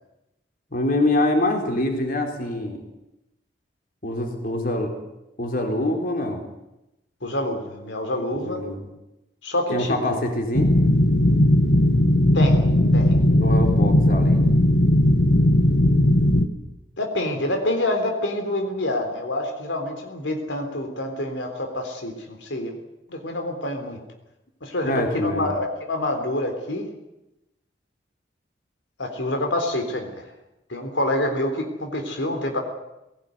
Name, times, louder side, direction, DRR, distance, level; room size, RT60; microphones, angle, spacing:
voice 1, 0.7-2.8 4.0-5.0 5.4-6.4 8.3-8.9 9.7-10.7 13.4-14.4 24.8-25.5, left 1 dB, 50° left, 3 dB, 3.9 m, -25 dB
voice 2, 7.2-8.6 9.4-10.2 12.3-12.7 12.9-13.2 17.0-22.8 23.1-24.0 24.6-26.9 29.0-30.1 30.7-32.6, left 1 dB, 80° left, 4 dB, 3.7 m, -27 dB
sound 1, 10.5-16.5, left 1 dB, 65° left, 1.8 m, -17 dB
20.0 x 18.0 x 9.6 m, 0.92 s
head